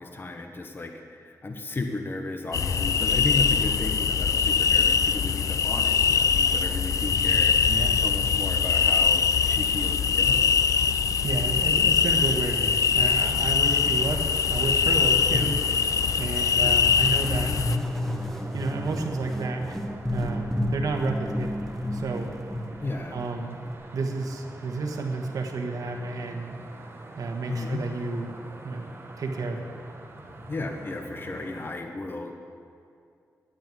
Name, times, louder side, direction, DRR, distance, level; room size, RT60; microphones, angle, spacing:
voice 1, 0.0-10.5 15.3-15.6 16.6-16.8 21.2-21.5 22.8-23.2 27.5-27.8 30.5-32.3, left 2 dB, 35° left, 4 dB, 1.1 m, -34 dB
sound 1, 2.5-17.8, left 6 dB, 65° left, 0.4 m, -23 dB
voice 2, 7.7-8.0 11.2-15.5 16.2-17.6 18.5-19.8 20.1-21.6 21.9-22.3 23.1-23.6 23.9-26.6 27.2-28.3 28.6-28.9 29.2-29.8, right 3 dB, 80° right, 2 dB, 1.4 m, -31 dB
sound 2, 12.9-31.7, right 2 dB, 40° right, 1.4 m, -45 dB
sound 3, 17.0-23.7, left 1 dB, 5° left, 1.3 m, -32 dB
9.5 x 9.1 x 9.1 m, 2.4 s
wide cardioid pair, 95°, 6 cm